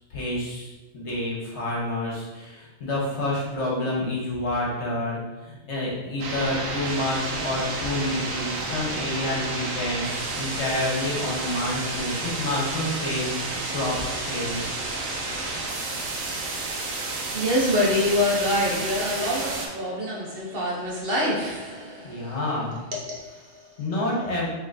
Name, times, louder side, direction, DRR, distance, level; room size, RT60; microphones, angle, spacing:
voice 1, 0.1-14.7 22.0-22.8 23.8-24.5, left 1 dB, 60° left, -4 dB, 1.4 m, -29 dB
sound 1, 6.2-19.7, right 2 dB, 75° right, 1.2 m, -31 dB
voice 2, 17.3-22.4 23.1-23.7, left 1 dB, 50° right, -4 dB, 1.0 m, -26 dB
5.5 x 3.2 x 2.6 m, 1.1 s
omnidirectional pair, 1.4 m